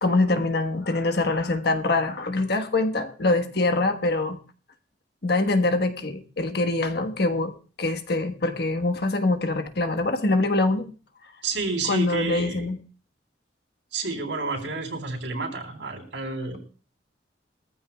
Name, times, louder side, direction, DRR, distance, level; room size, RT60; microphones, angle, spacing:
voice 1, 0.0-4.4 5.2-10.9 11.9-12.8, left 2 dB, 60° left, 7 dB, 1.4 m, -24 dB
voice 2, 11.4-12.7 13.9-16.6, right 3 dB, 90° right, 3 dB, 3.7 m, -30 dB
21.5 x 14.5 x 2.4 m, 0.38 s
head